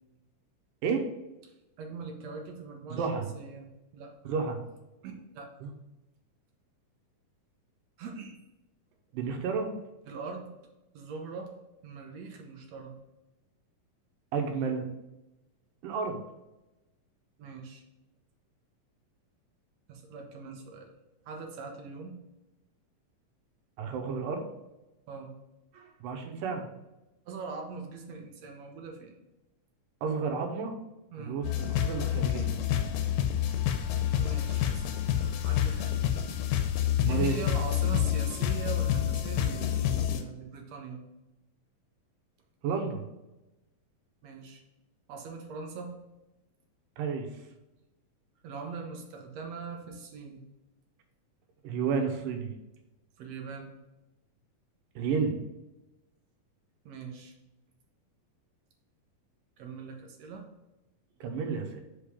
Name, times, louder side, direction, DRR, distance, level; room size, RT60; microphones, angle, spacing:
voice 1, 1.8-3.7 3.9-4.1 5.0-5.5 8.0-8.4 10.1-10.5 10.9-11.5 11.8-12.9 17.4-17.8 19.9-20.9 21.3-22.2 25.1-25.3 25.7-26.0 27.3-29.2 31.1-31.4 34.1-34.9 35.1-36.0 37.0-41.0 44.2-44.6 45.1-45.9 48.4-50.4 53.2-53.7 56.9-57.3 59.6-60.5, right 5 dB, 65° right, 2 dB, 1.8 m, -41 dB
voice 2, 2.9-3.3 4.3-4.6 5.6-5.7 9.1-9.7 14.3-14.9 15.8-16.2 23.8-24.4 26.0-26.7 30.0-30.7 31.2-32.6 37.0-37.4 42.6-43.0 47.0-47.3 51.6-52.5 55.0-55.4 61.2-61.8, right 5 dB, 85° right, 4 dB, 2.6 m, -31 dB
sound 1, 31.4-40.2, left 10 dB, 90° left, 2.4 m, -28 dB
5.6 x 5.2 x 5.0 m, 0.99 s
omnidirectional pair, 3.8 m